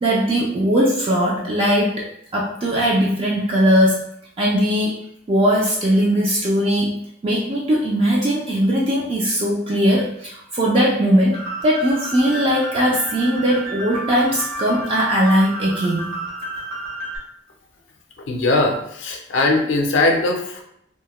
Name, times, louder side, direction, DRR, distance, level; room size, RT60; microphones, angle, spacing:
voice 1, 0.0-4.0 4.4-5.0 5.3-16.2, equal, 30° right, -4 dB, 0.3 m, -19 dB
sound 1, 11.3-17.2, right 2 dB, 55° right, 1.1 m, -31 dB
voice 2, 18.3-20.6, left 2 dB, 70° left, 2 dB, 0.5 m, -20 dB
2.2 x 2.0 x 2.9 m, 0.73 s
head